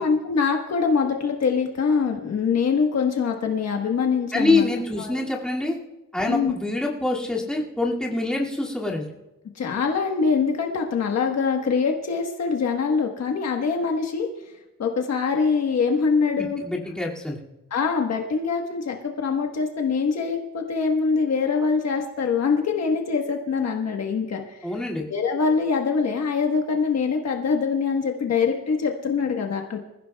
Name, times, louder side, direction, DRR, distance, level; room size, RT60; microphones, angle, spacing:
voice 1, 0.0-4.7 5.0-5.2 6.3-6.5 9.5-14.3 14.8-16.6 17.7-24.6 25.1-29.8, left 5 dB, 50° left, 2 dB, 1.3 m, -24 dB
voice 2, 4.3-5.8 6.1-9.0 16.4-17.4 24.6-25.0, left 2 dB, ahead, -5 dB, 2.3 m, -25 dB
26.5 x 15.0 x 2.3 m, 1.0 s
wide cardioid pair, 170°, 33 cm